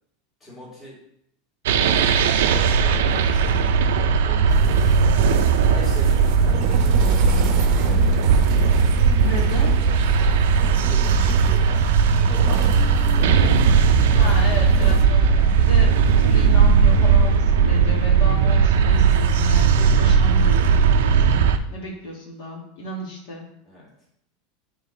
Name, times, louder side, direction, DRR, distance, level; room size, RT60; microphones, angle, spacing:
voice 1, 0.4-1.0 1.7-2.2 2.5-3.7 4.2-5.4 5.7-8.3 10.6-14.7 23.6-23.9, equal, 15° left, -6 dB, 2.1 m, -41 dB
sound 1, 1.7-21.6, right 5 dB, 90° right, 0.4 m, -17 dB
sound 2, 4.5-15.0, right 5 dB, 45° right, 0.7 m, -31 dB
voice 2, 9.2-9.8 14.1-23.4, left 2 dB, 60° left, -2 dB, 1.7 m, -33 dB
9.2 x 3.8 x 3.2 m, 0.71 s
supercardioid pair, 175°, 0 cm